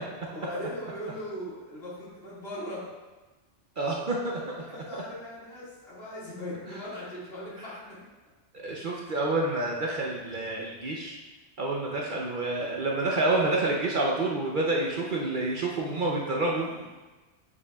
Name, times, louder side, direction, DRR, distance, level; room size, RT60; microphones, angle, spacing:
voice 1, 0.3-2.8 4.3-7.9 16.4-16.8, left 1 dB, 55° left, -8 dB, 2.3 m, -39 dB
voice 2, 3.8-4.6 4.9-5.0 6.7-6.8 7.6-7.7 8.6-11.2 11.6-16.7, right 2 dB, 50° right, -2 dB, 0.7 m, -28 dB
8.1 x 5.2 x 2.3 m, 1.2 s
omnidirectional pair, 1.2 m